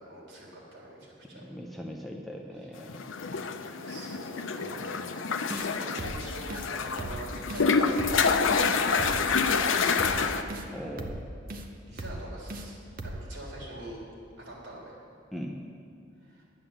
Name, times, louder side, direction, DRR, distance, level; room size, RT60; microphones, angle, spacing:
voice 1, 0.0-1.4 3.9-5.0 5.7-8.4 8.8-10.6 11.8-12.8 13.0-14.0 14.4-14.9 16.2-16.4, right 1 dB, 75° right, -4 dB, 3.7 m, -44 dB
voice 2, 1.5-3.0 10.7-11.3 15.3-15.6, equal, ahead, 0 dB, 0.7 m, -39 dB
sound 1, 2.9-10.4, left 5 dB, 80° left, 0.6 m, -27 dB
sound 2, 5.5-5.7 6.0-6.2 6.5-6.7 7.0-7.2 7.5-7.7 8.0-8.2 8.5-8.7 9.0-9.2 9.5-9.6 10.0-10.2 10.5-10.7 11.0-11.2 11.5-11.7 12.0-12.2 12.5-12.7 13.0-13.2, right 1 dB, 45° right, 0.8 m, -37 dB
10.5 x 9.0 x 7.3 m, 2.4 s
head